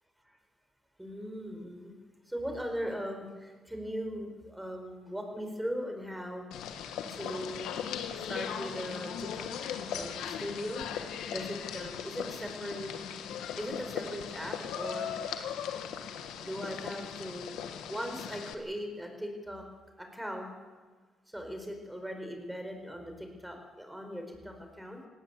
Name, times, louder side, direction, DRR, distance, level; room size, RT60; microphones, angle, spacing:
voice 1, 1.0-1.9 2.2-6.4 7.1-7.8 8.1-9.4 9.9-10.8 11.2-12.9 13.6-15.1 16.4-17.6 17.9-19.6 20.0-20.5 21.3-25.0, equal, 5° right, 4 dB, 4.6 m, -39 dB
sound 1, 6.5-18.5, left 8 dB, 85° left, 1.5 m, -38 dB
19.5 x 17.0 x 8.2 m, 1.4 s
cardioid pair, 90°, 0 cm